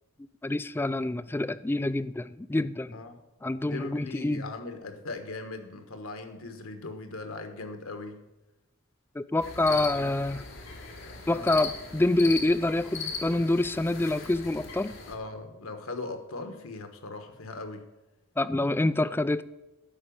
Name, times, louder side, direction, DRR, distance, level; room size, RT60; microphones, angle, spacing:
voice 1, 0.4-2.9 3.4-4.5 9.2-10.4 11.3-14.9 18.4-19.4, left 2 dB, 10° left, 0.3 m, -26 dB
voice 2, 3.6-8.2 9.6-10.1 11.3-11.6 15.1-17.9, left 3 dB, 90° left, 1.4 m, -39 dB
sound 1, 9.4-15.1, left 5 dB, 65° left, 2.1 m, -39 dB
12.0 x 5.0 x 8.6 m
head